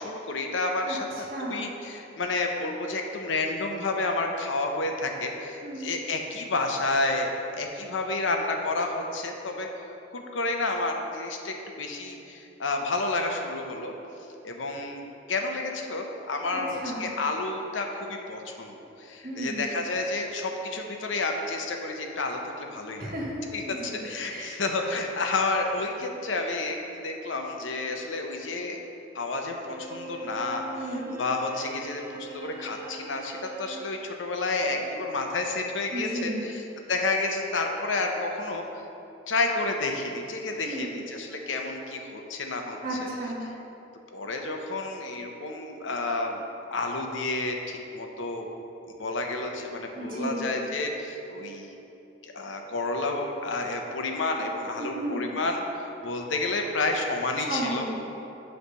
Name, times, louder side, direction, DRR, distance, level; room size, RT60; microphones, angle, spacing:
voice 1, 0.0-9.7 10.1-14.0 14.4-23.1 23.5-28.8 29.1-30.9 31.2-36.6 36.9-38.7 39.3-43.1 44.1-46.4 46.7-48.5 48.9-51.7 52.2-57.9, left 2 dB, 80° left, 3 dB, 0.8 m, -30 dB
voice 2, 0.9-1.6 5.6-5.9 16.5-17.0 19.2-19.6 23.0-24.5 30.8-31.1 35.9-36.5 40.6-41.0 42.8-43.4 49.9-50.4 54.8-55.3 57.5-57.9, right 1 dB, 50° right, -4 dB, 1.2 m, -34 dB
Bowed string instrument, 29.6-33.9, right 2 dB, 10° right, 0.5 m, -41 dB
8.1 x 3.3 x 6.2 m, 2.9 s
head